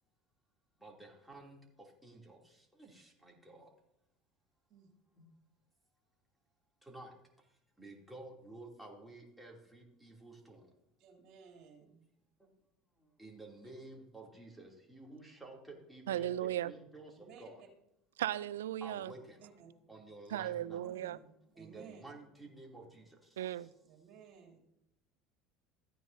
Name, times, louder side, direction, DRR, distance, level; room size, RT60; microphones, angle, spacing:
voice 1, 0.8-1.6 2.0-3.7 6.8-7.1 7.8-10.6 13.2-17.6 18.8-19.4 19.9-20.9 21.6-23.5, right 2 dB, 5° right, 2.9 m, -52 dB
voice 2, 11.0-12.1 17.1-17.7 19.4-19.9 20.6-21.2 21.5-22.0 23.8-24.6, right 7 dB, 60° right, 2.9 m, -56 dB
voice 3, 16.1-16.7 18.2-19.1 20.3-21.2 23.4-23.7, right 12 dB, 85° right, 0.3 m, -36 dB
14.5 x 9.2 x 2.7 m
hypercardioid pair, 80°, 0 cm